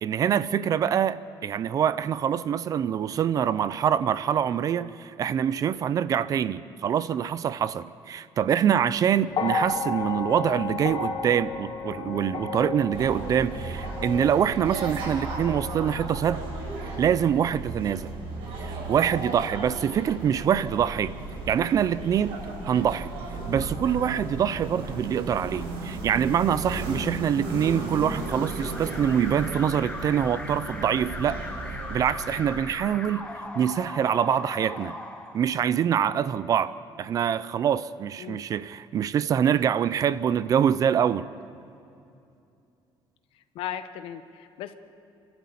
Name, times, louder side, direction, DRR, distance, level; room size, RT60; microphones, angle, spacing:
voice 1, 0.0-16.4 17.0-18.1 18.6-21.1 21.5-22.4 22.7-23.1 23.5-31.4 31.9-33.3 33.5-35.0 35.3-41.3, right 9 dB, 40° right, 16 dB, 0.5 m, -25 dB
sound 1, 9.3-17.6 18.7-18.8, left 4 dB, 45° left, 2.6 m, -33 dB
sound 2, 12.9-32.6, right 2 dB, 80° right, 5.6 m, -35 dB
Alarm, 28.1-36.0, left 2 dB, 10° left, 1.2 m, -39 dB
voice 2, 43.5-44.7, left 10 dB, 80° left, 10 dB, 1.1 m, -36 dB
28.5 x 12.5 x 8.6 m, 2.6 s
cardioid pair, 160°, 9 cm